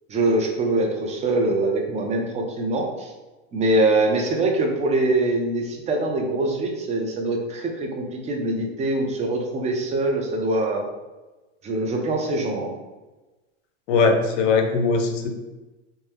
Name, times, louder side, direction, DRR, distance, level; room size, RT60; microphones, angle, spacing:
voice 1, 0.1-3.1 3.5-10.8 11.6-12.7, right 2 dB, 20° right, 1 dB, 0.5 m, -23 dB
voice 2, 13.9-15.3, left 4 dB, 70° left, 5 dB, 0.7 m, -20 dB
2.8 x 2.2 x 3.3 m, 1.1 s
hypercardioid pair, 105°, 38 cm